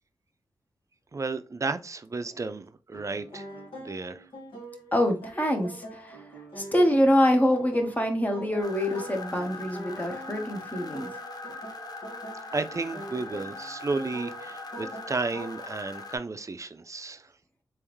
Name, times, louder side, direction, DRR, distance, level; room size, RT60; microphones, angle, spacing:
voice 1, 1.1-3.5 3.8-4.2 12.5-17.3, right 3 dB, 35° right, 0.5 m, -33 dB
sound 1, 2.9-15.7, right 1 dB, 75° left, 1.6 m, -44 dB
voice 2, 4.9-6.3 6.6-11.1, equal, 20° left, 1.1 m, -25 dB
sound 2, 8.6-16.2, left 3 dB, 45° left, 0.7 m, -41 dB
3.6 x 3.0 x 3.1 m
cardioid pair, 45°, 9 cm